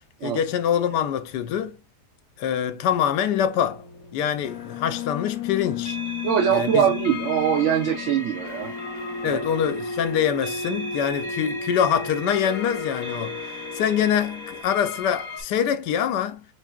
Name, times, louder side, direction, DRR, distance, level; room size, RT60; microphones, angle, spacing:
voice 1, 0.2-1.8 2.4-3.8 4.1-6.0 6.5-6.9 9.2-16.5, left 9 dB, 85° left, 1.2 m, -25 dB
sound 1, 3.7-14.6, left 5 dB, 65° left, 1.0 m, -34 dB
sound 2, 5.8-15.4, left 2 dB, 5° right, 1.4 m, -37 dB
voice 2, 6.2-8.7 9.2-9.4, right 9 dB, 80° right, 0.6 m, -22 dB
5.9 x 2.7 x 2.3 m
omnidirectional pair, 1.8 m